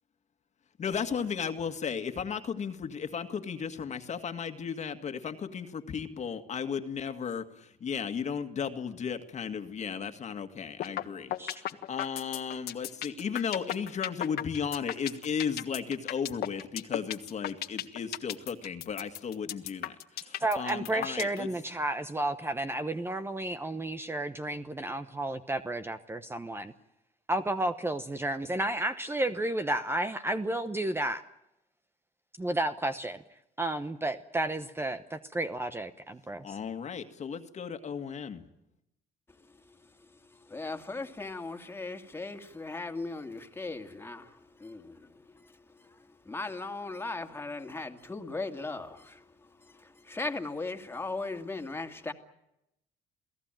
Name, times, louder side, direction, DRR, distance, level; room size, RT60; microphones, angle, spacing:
voice 1, 0.8-21.5 36.4-38.4, left 6 dB, 45° left, 2.0 m, -35 dB
sound 1, 10.8-11.0 11.3-21.4, left 13 dB, 70° left, 1.6 m, -34 dB
voice 2, 20.4-26.7 27.3-31.2 32.4-33.2 33.6-36.6, right 1 dB, 15° right, 1.0 m, -32 dB
voice 3, 39.3-52.1, left 3 dB, 15° left, 2.4 m, -39 dB
28.5 x 17.5 x 9.2 m
cardioid pair, 110°, 17 cm